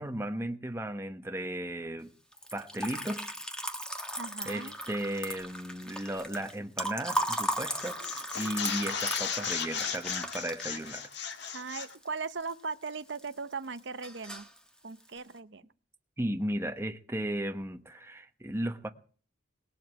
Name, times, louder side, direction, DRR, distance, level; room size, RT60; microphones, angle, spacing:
voice 1, 0.0-2.1 2.5-3.3 4.4-11.1 16.2-18.9, right 1 dB, 10° right, 1.0 m, -35 dB
Liquid, 2.3-12.5 12.9-13.5 13.8-14.6, equal, 5° left, 1.5 m, -37 dB
voice 2, 4.2-4.7 11.5-14.5 14.8-15.6, right 4 dB, 60° right, 0.7 m, -38 dB
saw cutting wood, 7.2-7.4 7.7-11.9, left 7 dB, 55° left, 1.8 m, -36 dB
20.0 x 7.8 x 7.7 m
head